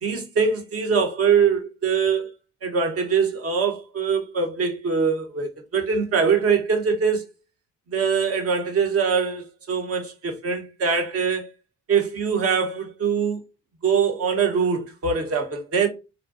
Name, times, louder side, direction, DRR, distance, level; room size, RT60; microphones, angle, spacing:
voice 1, 0.0-2.3 2.6-7.2 7.9-11.4 11.9-13.4 13.8-15.9, right 6 dB, 50° right, 0.7 m, -23 dB
2.5 x 2.1 x 2.3 m
cardioid pair, 90°, 30 cm